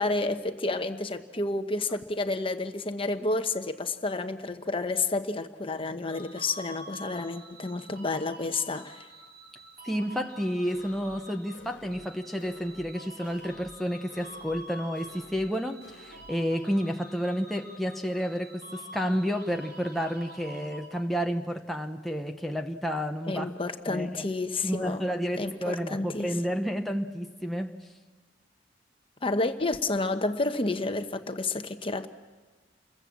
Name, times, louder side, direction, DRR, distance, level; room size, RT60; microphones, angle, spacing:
voice 1, 0.0-9.1 23.3-25.0 25.4-26.3 29.2-32.1, left 2 dB, 30° left, 1.1 m, -30 dB
sound 1, 6.1-21.3, equal, 55° right, 4.5 m, -47 dB
voice 2, 9.8-23.5 23.9-24.2 24.6-27.8, equal, ahead, 0.9 m, -31 dB
sound 2, 10.7-11.2 11.5-12.1 12.4-13.0 13.2-13.8 14.1-14.7 15.0-15.5 15.8-16.3, left 2 dB, 65° left, 1.7 m, -52 dB
29.0 x 22.0 x 7.5 m
head